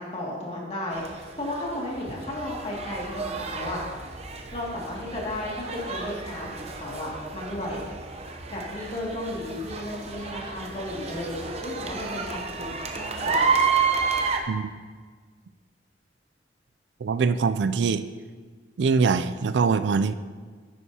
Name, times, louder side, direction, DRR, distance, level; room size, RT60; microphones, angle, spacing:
voice 1, 0.0-3.8 4.5-7.8 8.5-13.6, left 1 dB, 35° left, -4 dB, 2.2 m, -34 dB
sound 1, 0.9-14.4, right 5 dB, 35° right, 0.8 m, -30 dB
voice 2, 17.0-18.0 18.8-20.1, right 5 dB, 75° right, 12 dB, 0.4 m, -23 dB
9.9 x 9.4 x 2.8 m, 1.5 s
head